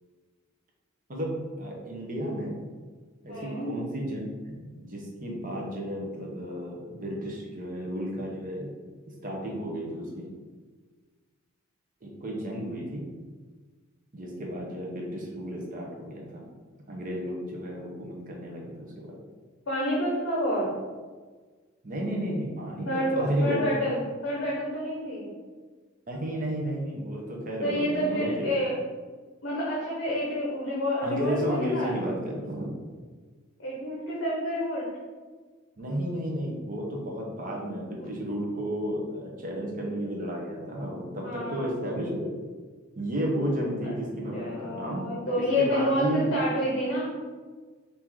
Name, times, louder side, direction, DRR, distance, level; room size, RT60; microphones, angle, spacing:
voice 1, 1.1-2.6 3.2-8.7 9.2-10.3 12.0-13.0 14.1-16.4 16.9-19.2 21.8-23.6 26.1-28.7 31.0-32.7 35.8-42.3 43.0-45.1 45.3-46.3, equal, 40° right, -1 dB, 0.9 m, -32 dB
voice 2, 3.3-3.7 19.7-20.7 22.8-25.3 27.6-28.8 29.4-31.9 33.6-34.9 38.0-38.1 41.2-41.7 43.8-44.0 44.3-47.1, equal, 60° left, -6 dB, 0.9 m, -28 dB
4.5 x 2.9 x 3.7 m, 1.4 s
head